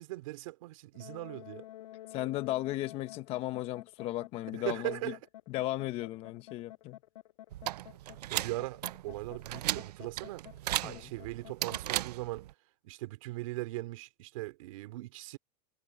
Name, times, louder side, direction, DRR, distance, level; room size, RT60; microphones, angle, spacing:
voice 1, 0.0-1.6 4.5-5.2 8.3-10.4 10.8-12.5 12.8-15.4, right 19 dB, 55° right, 3.0 m, -39 dB
sound 1, 0.9-11.8, left 14 dB, 70° left, 6.4 m, -50 dB
voice 2, 2.1-5.1 5.5-7.0 10.8-11.0, left 16 dB, 30° left, 1.0 m, -35 dB
sound 2, 7.5-12.5, right 14 dB, 85° right, 0.6 m, -37 dB
supercardioid pair, 160°, 20 cm